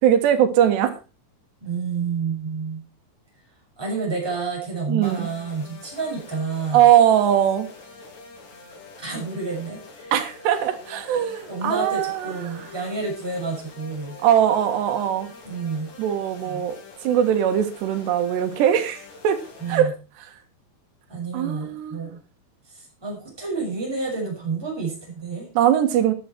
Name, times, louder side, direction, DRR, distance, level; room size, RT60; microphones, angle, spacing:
voice 1, 0.0-0.9 4.9-5.3 6.7-7.7 10.1-12.6 14.2-15.3 16.0-19.4 19.7-19.9 21.3-22.1 25.6-26.1, right 10 dB, 85° right, 8 dB, 3.8 m, -20 dB
voice 2, 1.6-2.8 3.8-6.8 9.0-10.1 11.1-14.2 15.4-15.9 16.4-16.6 19.6-19.9 21.1-22.2 22.7-25.5, right 4 dB, 5° right, -2 dB, 6.2 m, -29 dB
sound 1, 5.0-19.8, left 3 dB, 80° left, 5.7 m, -45 dB
13.5 x 11.0 x 4.5 m, 0.31 s
omnidirectional pair, 4.7 m